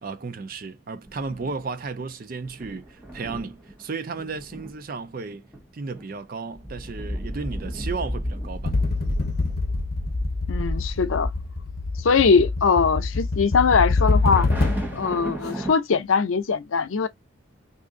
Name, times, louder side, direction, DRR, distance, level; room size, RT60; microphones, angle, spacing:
voice 1, 0.0-5.5 5.7-8.8, right 4 dB, 45° right, 0.5 m, -34 dB
sound 1, 1.1-1.7 2.4-3.8 4.1-4.7 5.3-5.6 5.9-6.1 6.5-12.6 12.8-12.9 14.0-15.7, equal, 10° right, 0.9 m, -32 dB
sound 2, 8.7-15.0, left 3 dB, 50° left, 0.7 m, -25 dB
voice 2, 10.5-11.3 12.0-14.5 14.9-17.1, left 5 dB, 85° left, 0.5 m, -21 dB
2.7 x 2.5 x 3.7 m
head